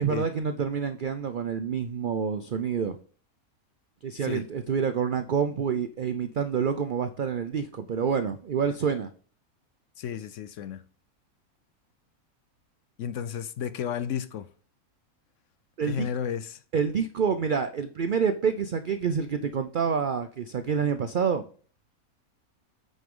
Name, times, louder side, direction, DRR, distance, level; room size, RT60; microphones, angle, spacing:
voice 1, 0.0-3.0 4.0-9.1 15.8-16.1 16.7-21.5, right 6 dB, 70° right, 0.4 m, -27 dB
voice 2, 10.0-10.8 13.0-14.5 15.8-16.6, left 8 dB, 65° left, 0.8 m, -33 dB
8.8 x 6.3 x 3.7 m
omnidirectional pair, 1.6 m